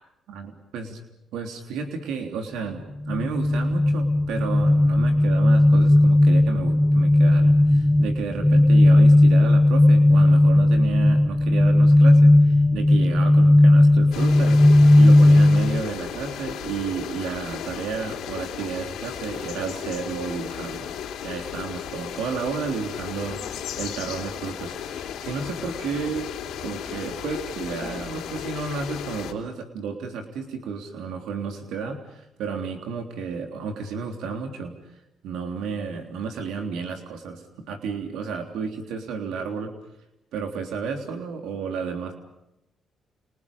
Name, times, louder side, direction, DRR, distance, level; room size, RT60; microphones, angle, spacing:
voice 1, 0.3-1.0 1.3-14.6 15.0-26.3 26.6-34.8 35.2-39.7 40.3-42.1, right 5 dB, 90° right, 4 dB, 3.5 m, -32 dB
sound 1, 3.0-15.8, left 1 dB, 10° left, 1.4 m, -16 dB
sound 2, 14.1-29.3, left 9 dB, 85° left, 3.8 m, -35 dB
30.0 x 29.0 x 5.4 m, 0.88 s
cardioid pair, 90°, 0 cm